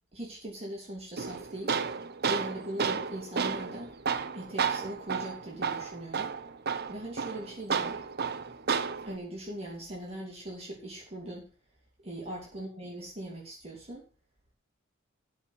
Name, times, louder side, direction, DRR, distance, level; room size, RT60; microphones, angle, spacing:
voice 1, 0.1-1.8 2.2-3.9 4.3-6.4 6.9-8.0 9.0-11.5 12.0-14.1, right 1 dB, 30° right, -3 dB, 3.2 m, -40 dB
Tools, 1.2-9.2, right 6 dB, 50° right, 0.8 m, -32 dB
13.5 x 5.1 x 6.5 m, 0.36 s
head